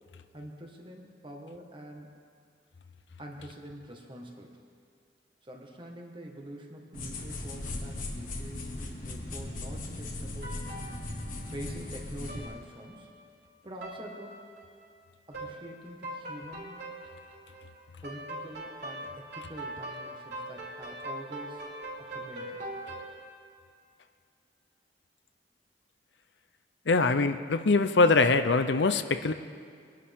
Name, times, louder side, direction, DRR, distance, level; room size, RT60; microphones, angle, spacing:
voice 1, 0.3-2.1 3.2-4.6 5.4-10.5 11.5-13.1 13.6-14.4 15.3-16.9 18.0-21.6 22.0-22.6, equal, 30° right, 1 dB, 1.6 m, -45 dB
sound 1, 6.9-12.4, left 2 dB, 45° left, 1.6 m, -38 dB
sound 2, 10.4-12.0 12.3-12.5 12.8-13.3 13.8-14.0 14.3-14.9 15.3-15.5 15.8-23.1, right 1 dB, 65° right, 4.2 m, -41 dB
voice 2, 26.9-29.3, left 3 dB, 80° left, 9 dB, 0.7 m, -23 dB
23.0 x 11.5 x 3.6 m, 2.3 s
head